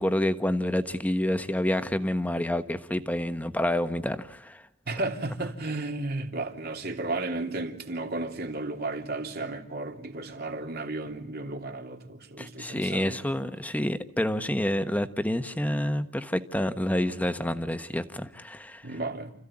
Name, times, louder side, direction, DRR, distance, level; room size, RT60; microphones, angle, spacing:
voice 1, 0.0-4.6 12.4-18.9, left 1 dB, 10° left, 1.3 m, -28 dB
voice 2, 4.9-13.2 18.8-19.3, right 2 dB, 55° right, 3.1 m, -33 dB
29.5 x 15.5 x 9.9 m
head